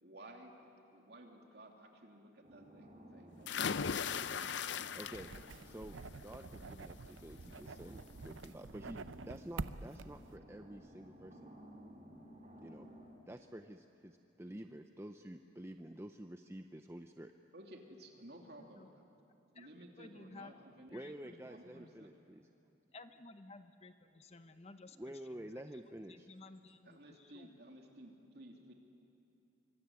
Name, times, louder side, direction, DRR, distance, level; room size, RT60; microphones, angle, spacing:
voice 1, 0.0-4.6 14.5-14.6 17.5-19.0 19.5-22.2 26.8-28.7, right 1 dB, 55° right, 2 dB, 2.9 m, -56 dB
sound 1, 2.4-13.2, right 1 dB, 35° right, 3.7 m, -57 dB
sound 2, 3.5-5.5 5.9-6.4 7.8-7.9 8.3-8.4, left 6 dB, 65° left, 0.6 m, -38 dB
voice 2, 5.0-5.3 5.6-5.9 6.2-11.5 12.6-12.9 13.3-17.3 20.9-22.4 25.0-26.3, right 1 dB, 15° right, 6 dB, 0.6 m, -49 dB
sound 3, 5.1-10.4, right 3 dB, 85° right, 0.7 m, -47 dB
voice 3, 19.5-20.6 20.9-21.9 22.9-25.5 26.1-27.5, left 3 dB, 35° left, 9 dB, 0.8 m, -56 dB
25.0 x 24.0 x 9.6 m, 2.7 s
head